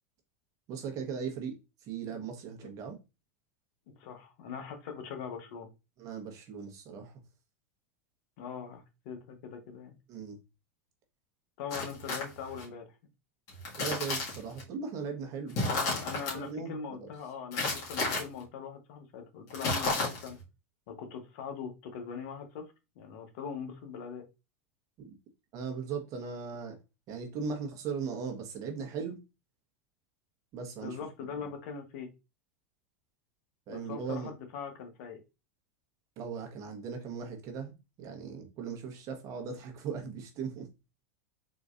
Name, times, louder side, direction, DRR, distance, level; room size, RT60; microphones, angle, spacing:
voice 1, 0.7-1.6 1.8-3.0 6.0-7.1 10.1-10.4 13.8-15.6 16.3-17.1 25.0-25.1 25.5-26.8 27.1-29.2 30.5-31.0 33.7-34.3 36.2-40.7, right 6 dB, 45° right, 1.2 m, -38 dB
voice 2, 4.0-5.7 8.4-10.0 11.6-12.9 15.6-20.4 20.9-24.2 30.8-32.1 33.7-35.2, left 6 dB, 65° left, 1.0 m, -41 dB
sound 1, 11.7-12.6 13.5-14.6 15.5-16.3 17.5-18.2 19.5-20.4, left 2 dB, 45° left, 1.8 m, -32 dB
4.0 x 2.9 x 2.5 m
hypercardioid pair, 115°, 8 cm